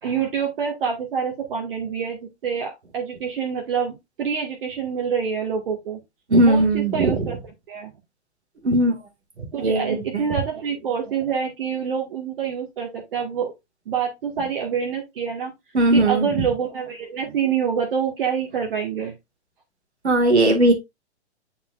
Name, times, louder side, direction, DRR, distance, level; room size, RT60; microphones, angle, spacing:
voice 1, 0.0-6.0 6.4-7.4 7.7-7.9 9.5-13.5 13.9-15.5 15.9-19.1, right 7 dB, 50° right, 1.9 m, -26 dB
voice 2, 6.3-7.3 8.6-8.9 9.4-10.2 15.7-16.3 20.0-20.7, right 1 dB, 75° right, 2.1 m, -18 dB
9.5 x 4.3 x 2.5 m
figure-of-eight pair, 110°, 34 cm